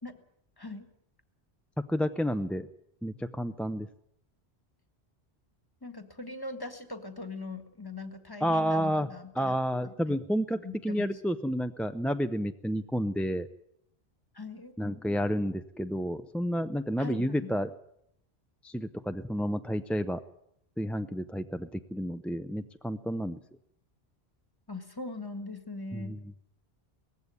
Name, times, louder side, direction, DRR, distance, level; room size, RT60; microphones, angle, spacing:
voice 1, 0.6-0.9 5.8-9.6 9.8-10.2 10.6-11.2 14.3-14.7 17.0-17.5 24.7-26.2, left 3 dB, 20° left, 9 dB, 1.8 m, -41 dB
voice 2, 1.9-2.7 3.0-3.9 8.4-9.1 9.4-13.5 14.8-17.7 18.6-20.2 20.8-23.4 25.9-26.2, equal, ahead, 9 dB, 0.5 m, -30 dB
19.0 x 15.5 x 9.7 m, 0.76 s
omnidirectional pair, 1.1 m